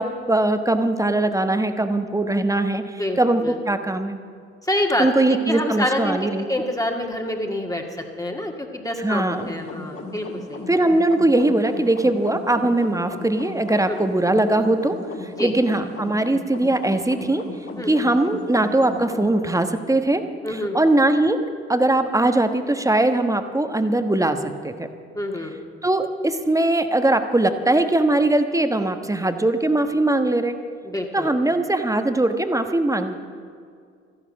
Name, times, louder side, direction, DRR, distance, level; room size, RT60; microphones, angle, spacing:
voice 1, 0.0-4.2 5.0-6.5 9.0-9.5 10.7-17.4 17.9-21.4 21.7-24.9 25.8-30.6 31.1-33.1, right 2 dB, 10° right, 8 dB, 1.2 m, -21 dB
voice 2, 3.0-3.6 4.6-6.2 6.5-7.8 8.2-10.6 13.9-14.0 15.4-15.5 17.8-17.9 20.4-20.8 25.1-25.6 30.8-31.3, left 1 dB, 10° left, 2 dB, 1.9 m, -27 dB
sound 1, 9.3-19.3, left 3 dB, 40° left, 2.5 m, -36 dB
14.0 x 11.0 x 7.3 m, 2.2 s
hypercardioid pair, 50°, 33 cm